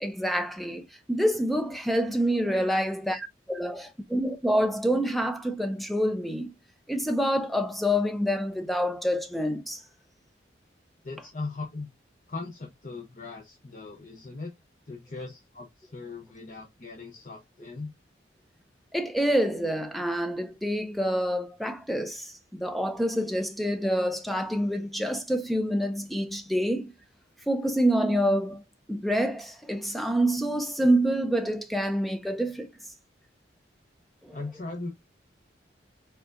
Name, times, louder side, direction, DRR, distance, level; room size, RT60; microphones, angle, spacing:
voice 1, 0.0-6.5 6.9-9.8 18.9-26.9 27.5-28.6 28.9-32.7 34.2-34.4, equal, ahead, 0.6 m, -27 dB
voice 2, 11.0-11.9 12.3-14.5 14.9-17.9 34.3-34.9, left 3 dB, 45° left, 0.9 m, -39 dB
4.4 x 3.8 x 2.6 m
head